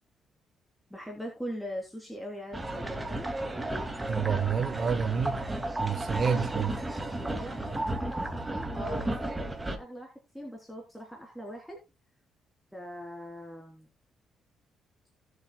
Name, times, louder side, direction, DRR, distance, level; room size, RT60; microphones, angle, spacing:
voice 1, 0.9-3.3 6.9-11.8 12.7-13.9, equal, ahead, 3.5 m, -41 dB
sound 1, 2.5-9.8, right 1 dB, 15° right, 2.2 m, -33 dB
voice 2, 4.1-5.4 5.8-6.7, right 7 dB, 50° right, 1.2 m, -28 dB
18.5 x 8.1 x 2.3 m
cardioid pair, 90°, 0 cm